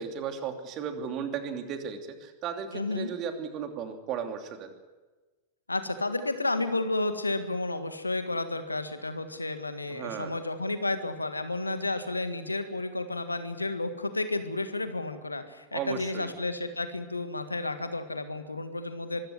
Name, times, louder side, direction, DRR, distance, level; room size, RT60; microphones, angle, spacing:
voice 1, 0.0-4.7 9.9-10.3 15.7-16.3, right 7 dB, 35° right, 6 dB, 2.9 m, -35 dB
voice 2, 2.7-3.1 5.7-19.3, left 2 dB, 80° left, 10 dB, 1.7 m, -32 dB
24.0 x 15.5 x 9.8 m, 1.2 s
figure-of-eight pair, 90°, 0 cm